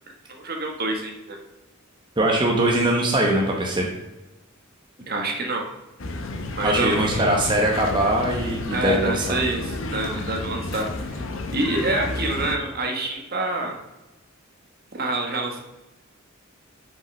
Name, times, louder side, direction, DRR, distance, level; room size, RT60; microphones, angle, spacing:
voice 1, 0.3-1.4 5.1-5.6 6.6-7.2 8.7-13.7 14.9-15.6, right 2 dB, 50° right, 2 dB, 1.3 m, -27 dB
voice 2, 2.2-3.9 6.6-9.4, right 1 dB, 20° right, -1 dB, 1.0 m, -21 dB
sound 1, 6.0-12.6, left 2 dB, 70° left, 0.9 m, -31 dB
6.0 x 5.4 x 5.4 m, 1.0 s
head